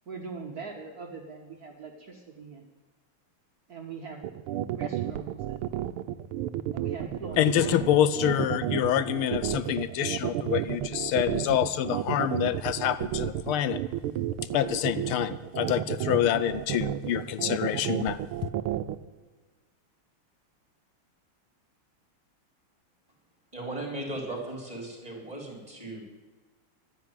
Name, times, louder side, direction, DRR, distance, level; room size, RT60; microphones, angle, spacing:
voice 1, 0.1-2.6 3.7-4.3 4.7-5.6 6.7-7.7, right 4 dB, 45° right, 1 dB, 1.7 m, -41 dB
sound 1, 4.2-19.0, right 12 dB, 85° right, 1.6 m, -31 dB
voice 2, 7.4-13.8 14.5-18.2, left 11 dB, 80° left, 14 dB, 1.5 m, -26 dB
voice 3, 23.5-26.0, right 2 dB, 15° right, 0 dB, 4.1 m, -37 dB
12.0 x 10.5 x 9.1 m, 1.3 s
omnidirectional pair, 2.4 m